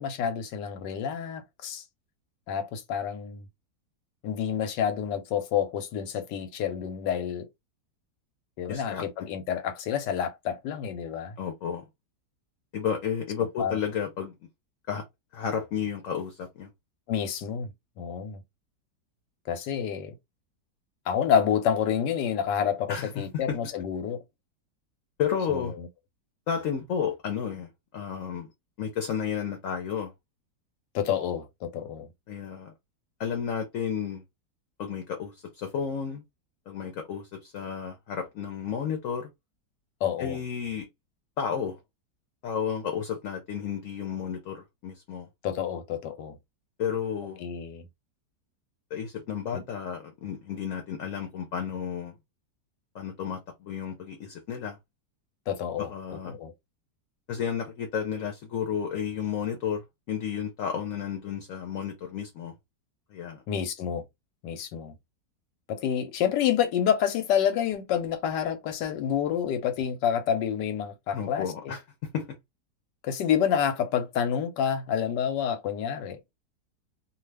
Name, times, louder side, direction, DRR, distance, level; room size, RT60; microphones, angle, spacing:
voice 1, 0.0-1.8 2.5-3.5 4.2-7.5 8.6-11.3 13.6-13.8 17.1-17.7 18.0-18.4 19.5-20.1 21.1-24.2 25.5-25.9 30.9-32.1 40.0-40.4 45.4-46.4 47.4-47.8 49.5-49.6 55.5-55.9 56.2-56.5 63.5-64.0 64.4-65.0 65.7-71.8 73.0-76.2, left 8 dB, 90° left, 1.3 m, -28 dB
voice 2, 8.7-9.3 11.4-11.8 12.7-14.3 14.9-15.0 15.3-16.7 22.9-23.6 25.2-25.7 26.5-28.5 28.8-30.1 32.3-32.7 33.2-34.2 34.8-36.2 36.7-39.3 40.2-40.9 41.4-41.8 42.4-45.3 46.8-47.4 48.9-52.1 52.9-54.8 55.8-56.3 57.3-62.5 63.1-63.4 71.1-71.8 72.1-72.3, left 7 dB, 60° left, 1.0 m, -32 dB
2.7 x 2.4 x 3.2 m
omnidirectional pair, 1.8 m